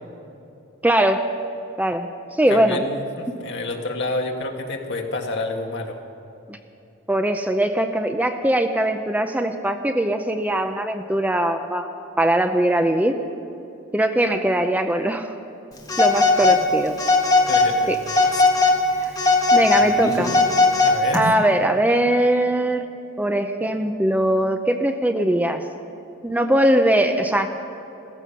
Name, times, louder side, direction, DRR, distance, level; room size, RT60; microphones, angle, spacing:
voice 1, 0.8-1.2 1.8-2.1 2.4-2.8 6.5-6.6 7.1-11.9 12.2-13.2 13.9-15.3 16.0-17.0 17.9-18.0 19.0-19.1 19.5-20.4 21.1-22.8 23.2-25.6 26.2-27.5, right 1 dB, 10° right, 7 dB, 0.6 m, -21 dB
voice 2, 2.5-6.0 17.5-17.9 18.3-18.4 20.8-21.2, left 2 dB, 60° left, 2 dB, 1.7 m, -28 dB
Telephone, 15.9-16.6 17.0-17.7 18.1-18.8 19.2-21.2, left 3 dB, 20° left, 1.8 m, -17 dB
15.5 x 15.5 x 5.8 m, 2.8 s
head